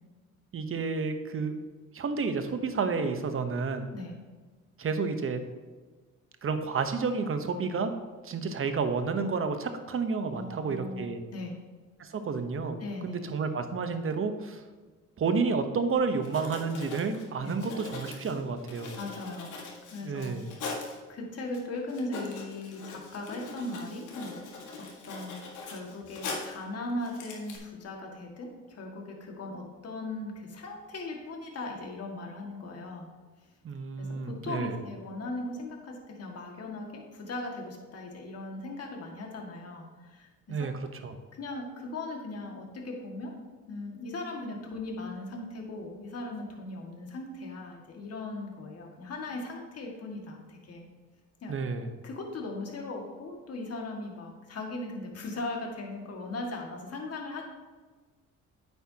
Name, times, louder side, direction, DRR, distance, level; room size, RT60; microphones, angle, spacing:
voice 1, 0.5-1.5 1.9-3.9 4.8-5.4 6.4-7.9 8.2-11.2 12.0-14.6 15.2-18.9 20.0-20.5 33.6-34.7 40.5-40.7 41.0-41.2 51.5-51.9, right 4 dB, 45° right, 8 dB, 1.0 m, -30 dB
voice 2, 10.3-11.6 12.8-13.2 17.4-17.6 19.0-19.6 19.9-20.4 21.1-24.5 24.8-25.4 25.6-33.1 34.0-40.7 41.4-43.3 43.7-50.9 51.4-51.6 52.0-57.4, left 2 dB, 55° left, 1 dB, 2.0 m, -38 dB
Writing, 15.9-16.0 16.2-21.0 21.5-21.6 21.9-26.6 27.0-27.6, left 3 dB, 80° left, 1.8 m, -41 dB
9.3 x 8.0 x 2.9 m, 1.4 s
cardioid pair, 90°, 30 cm